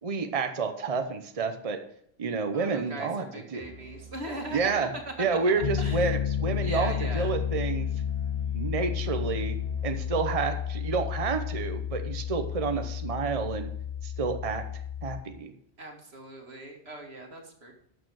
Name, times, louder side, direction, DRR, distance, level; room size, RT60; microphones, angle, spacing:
voice 1, 0.0-1.8 2.2-3.2 3.5-3.6 4.5-4.9 5.2-7.9 8.5-9.6 9.8-13.7 14.0-14.6 15.0-15.5, right 4 dB, 35° right, 7 dB, 0.9 m, -29 dB
voice 2, 2.5-4.7 5.2-5.4 5.8-6.1 6.5-7.3 15.8-17.7, right 1 dB, 85° right, 2 dB, 2.2 m, -40 dB
Musical instrument, 3.6-10.4, right 4 dB, 5° left, 2.7 m, -49 dB
Piano, 5.6-15.2, left 9 dB, 45° left, 0.8 m, -31 dB
12.5 x 6.7 x 4.8 m, 0.69 s
omnidirectional pair, 1.1 m